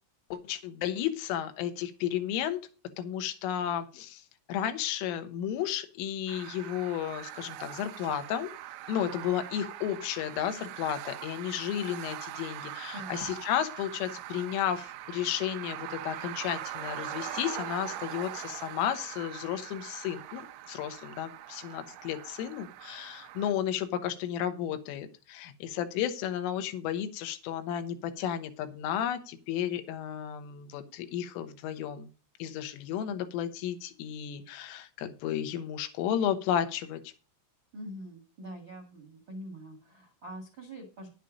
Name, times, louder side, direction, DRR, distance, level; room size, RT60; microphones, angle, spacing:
voice 1, 0.3-2.7 3.0-4.2 4.5-8.5 8.9-32.1 32.4-37.1, left 10 dB, 85° left, 9 dB, 3.7 m, -33 dB
sound 1, 6.3-23.5, right 13 dB, 80° right, 2.6 m, -42 dB
voice 2, 12.9-13.2 37.7-41.1, equal, 55° right, 3 dB, 1.4 m, -44 dB
10.5 x 8.3 x 5.1 m, 0.34 s
omnidirectional pair, 5.8 m